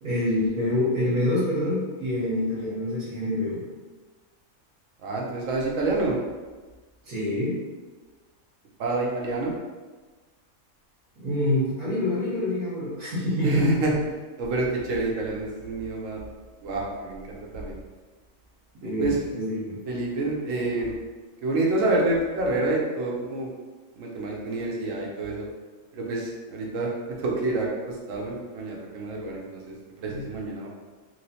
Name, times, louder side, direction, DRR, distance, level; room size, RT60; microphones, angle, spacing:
voice 1, 0.0-3.6 7.0-7.5 11.2-13.7 18.8-19.8 30.1-30.2, left 1 dB, 90° right, -9 dB, 1.5 m, -26 dB
voice 2, 5.0-6.2 8.8-9.5 13.4-14.0 14.4-16.2 16.6-17.8 18.8-19.2 19.9-20.9 21.4-23.5 24.0-25.4 25.9-26.9 27.2-30.7, right 2 dB, 70° right, -2 dB, 1.0 m, -28 dB
3.0 x 2.9 x 2.8 m, 1.3 s
omnidirectional pair, 1.5 m